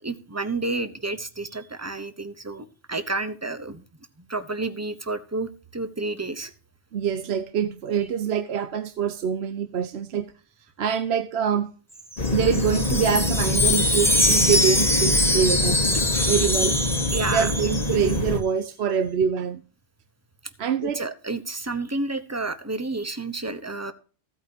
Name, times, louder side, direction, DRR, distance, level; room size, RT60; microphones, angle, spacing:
voice 1, 0.0-3.8 4.3-6.5 16.1-16.4 17.1-17.5 20.8-23.9, right 2 dB, 15° right, 0.8 m, -30 dB
voice 2, 6.9-10.3 10.8-11.7 12.3-15.8 16.3-16.8 17.3-19.6 20.6-21.1, right 7 dB, 60° right, 1.0 m, -25 dB
Wind chime, 12.0-18.2, left 1 dB, ahead, 1.0 m, -23 dB
sound 1, 12.2-18.4, left 2 dB, 35° left, 1.3 m, -26 dB
15.5 x 8.7 x 2.8 m
omnidirectional pair, 1.3 m